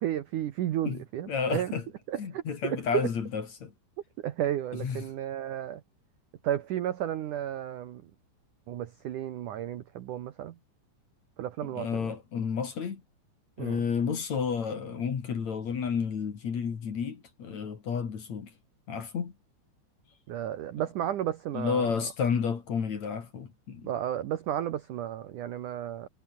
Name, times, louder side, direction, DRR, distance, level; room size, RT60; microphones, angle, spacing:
voice 1, 0.0-1.7 2.1-3.0 4.2-5.8 6.4-8.1 8.7-10.6 11.4-12.1 13.6-13.8 20.3-22.0 23.8-26.1, right 11 dB, 75° right, 1.8 m, -33 dB
voice 2, 1.3-1.8 2.2-3.7 4.8-5.0 11.6-13.0 13.6-18.5 18.9-19.3 21.5-23.9, left 6 dB, 45° left, 3.2 m, -31 dB
omnidirectional pair, 5.4 m